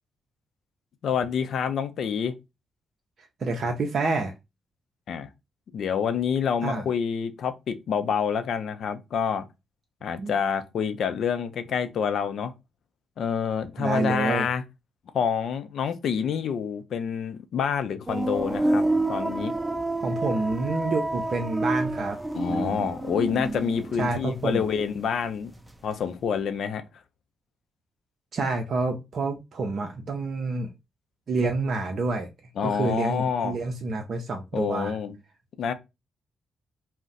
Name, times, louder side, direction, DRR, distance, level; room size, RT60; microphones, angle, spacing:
voice 1, 1.0-2.4 5.1-5.3 5.7-9.5 10.0-12.5 13.2-14.6 15.1-19.5 22.3-25.5 25.8-26.8 32.6-33.6 34.5-35.2 35.6-35.7, left 7 dB, 65° left, 0.4 m, -27 dB
voice 2, 3.4-4.3 6.6-6.8 10.2-10.3 13.8-14.5 20.0-22.2 22.5-22.9 24.0-24.6 28.3-30.7 31.3-32.3 32.6-35.0, right 3 dB, 55° right, 0.5 m, -28 dB
sound 1, 18.1-24.9 25.2-25.9, right 2 dB, 10° right, 0.6 m, -29 dB
2.4 x 2.1 x 3.9 m
hypercardioid pair, 40°, 0 cm